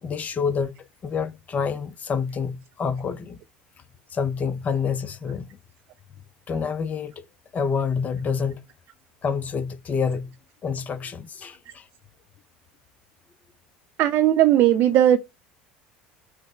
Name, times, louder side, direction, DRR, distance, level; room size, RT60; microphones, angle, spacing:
voice 1, 0.0-0.7 1.0-3.4 4.1-5.5 6.5-7.2 7.5-8.6 9.2-10.3 10.6-11.9, left 6 dB, 35° left, 0.5 m, -27 dB
voice 2, 14.0-15.2, right 12 dB, 50° right, 0.3 m, -17 dB
3.2 x 2.0 x 4.1 m
hypercardioid pair, 75°, 5 cm